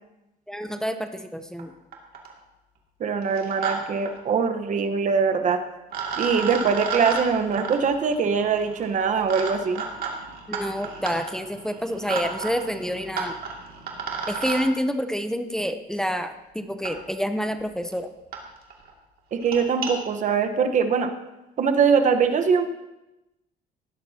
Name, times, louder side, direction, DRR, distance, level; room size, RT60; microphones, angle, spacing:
voice 1, 0.5-1.7 10.5-13.3 14.3-18.1, equal, 5° left, 7 dB, 0.8 m, -28 dB
sound 1, 1.6-1.7 1.9-2.4 3.2-3.7 4.0-4.1 5.4-5.5 5.9-14.6 15.9-16.0 16.8-16.9 17.6-17.7 17.9-18.0 18.3-18.4 18.7-18.9 19.3-19.9, right 5 dB, 65° right, 2.5 m, -33 dB
voice 2, 3.0-5.6 6.2-9.8 19.3-21.1 21.6-22.7, right 6 dB, 45° right, 7 dB, 1.2 m, -22 dB
17.0 x 12.0 x 2.9 m, 0.97 s
cardioid pair, 110°, 17 cm